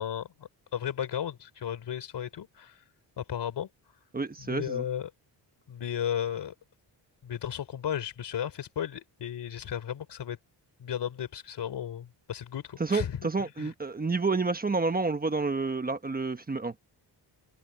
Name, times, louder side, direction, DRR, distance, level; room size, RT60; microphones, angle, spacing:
voice 1, 0.0-2.8 3.2-3.7 4.4-5.1 5.7-6.5 7.2-10.4 10.8-13.3 13.6-13.7, left 9 dB, 65° left, 3.5 m, -34 dB
voice 2, 4.1-4.8 12.8-16.7, right 3 dB, 20° right, 1.2 m, -29 dB
open air
cardioid pair, 115°, 44 cm